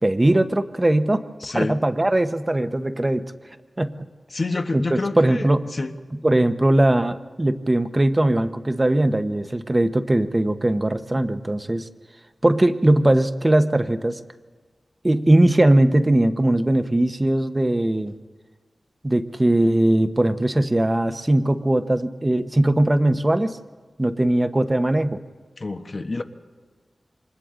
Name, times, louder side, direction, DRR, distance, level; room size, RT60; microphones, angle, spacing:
voice 1, 0.0-1.2 1.5-3.3 3.8-4.0 4.7-5.7 6.2-11.9 12.4-14.2 15.0-18.1 19.0-23.6 24.0-25.2, right 1 dB, 25° right, 9 dB, 1.0 m, -20 dB
voice 2, 1.4-1.8 4.3-5.9 25.6-26.2, left 3 dB, 50° left, 6 dB, 1.2 m, -28 dB
28.5 x 25.0 x 3.8 m, 1.4 s
wide cardioid pair, 65°, 0 cm